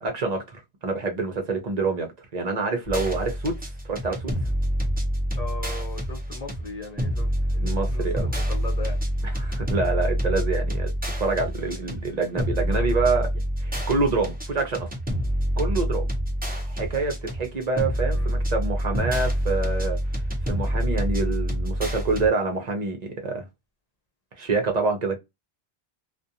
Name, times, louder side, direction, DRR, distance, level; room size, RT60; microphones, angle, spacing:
voice 1, 0.0-3.5 3.9-4.3 7.5-8.3 9.2-10.9 11.2-13.3 13.6-14.9 15.6-16.1 16.6-20.0 20.5-23.5 24.4-25.2, right 3 dB, 45° right, 0.7 m, -26 dB
sound 1, 2.8-22.3, equal, 10° right, 0.7 m, -27 dB
voice 2, 5.3-9.0 18.1-18.4, left 3 dB, 45° left, 0.7 m, -38 dB
2.4 x 2.2 x 2.7 m
omnidirectional pair, 1.0 m